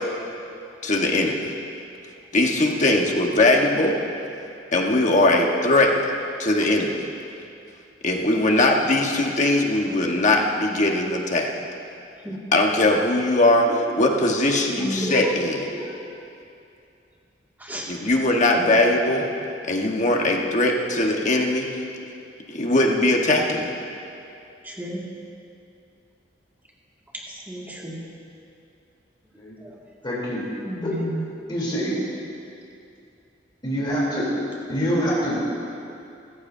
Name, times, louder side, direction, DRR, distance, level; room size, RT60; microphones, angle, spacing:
voice 1, 0.8-1.5 2.3-4.0 4.7-5.9 6.4-7.0 8.0-11.5 12.5-13.7 14.0-15.6 17.9-19.3 19.7-21.7 22.5-23.7, left 2 dB, 40° left, 1 dB, 1.4 m, -20 dB
voice 2, 14.5-15.9 17.6-17.9 18.6-18.7 24.6-25.0 27.1-28.0 29.6-29.8 30.6-31.3, equal, 10° right, -4 dB, 2.3 m, -32 dB
voice 3, 30.0-30.4 30.8-31.0 31.5-32.0 33.6-34.3 34.7-35.5, equal, 25° left, -7 dB, 3.6 m, -25 dB
24.0 x 14.5 x 2.8 m, 2.6 s
head